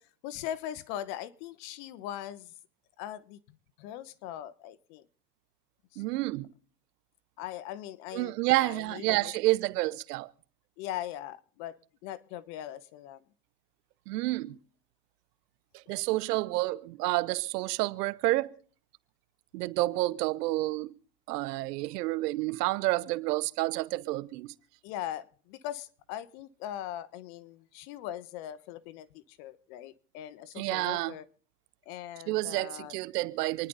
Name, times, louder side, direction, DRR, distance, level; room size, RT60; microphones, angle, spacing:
voice 1, 0.2-2.5 3.0-5.1 5.9-6.0 7.4-9.3 10.8-11.8 12.0-13.2 24.8-31.3 31.9-32.9, left 12 dB, 75° left, 1.3 m, -40 dB
voice 2, 6.0-6.5 8.1-10.3 14.1-14.6 15.7-18.6 19.5-20.9 21.3-24.5 30.6-31.1 32.3-33.7, right 19 dB, 90° right, 0.9 m, -29 dB
27.0 x 10.5 x 4.0 m
supercardioid pair, 105°, 46 cm